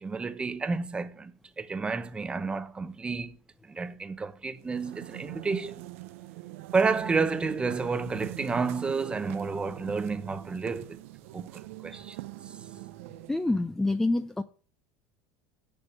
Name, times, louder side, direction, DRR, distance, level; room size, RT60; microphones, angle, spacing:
voice 1, 0.0-3.4 3.7-5.8 6.7-11.0 11.3-12.2, right 4 dB, 15° right, 0.8 m, -30 dB
sound 1, 4.6-13.5, right 19 dB, 90° right, 0.6 m, -43 dB
voice 2, 13.3-14.4, left 2 dB, 5° left, 0.4 m, -27 dB
7.3 x 6.9 x 7.9 m
cardioid pair, 145°, 7 cm